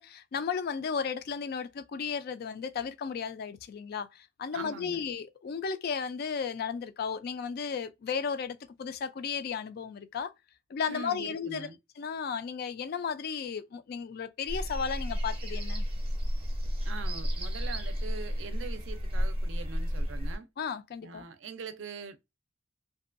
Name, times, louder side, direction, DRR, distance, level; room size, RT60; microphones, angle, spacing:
voice 1, 0.0-10.3 10.7-11.7 12.0-15.9 20.6-21.3, left 6 dB, 50° left, 0.3 m, -34 dB
voice 2, 4.5-5.1 10.9-11.8 16.8-20.5 21.0-22.2, right 5 dB, 70° right, 0.4 m, -42 dB
sound 1, 14.5-20.4, equal, 30° right, 0.6 m, -32 dB
2.6 x 2.2 x 2.4 m
head